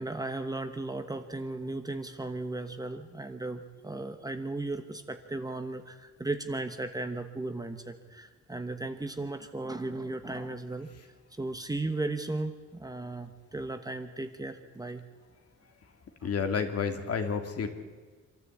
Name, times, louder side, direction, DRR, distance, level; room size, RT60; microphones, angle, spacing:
voice 1, 0.0-10.9 11.4-15.0, right 2 dB, 15° right, 7 dB, 1.0 m, -36 dB
voice 2, 16.2-17.7, left 6 dB, 55° left, 6 dB, 2.2 m, -30 dB
26.0 x 13.5 x 8.3 m, 1.5 s
wide cardioid pair, 165°, 29 cm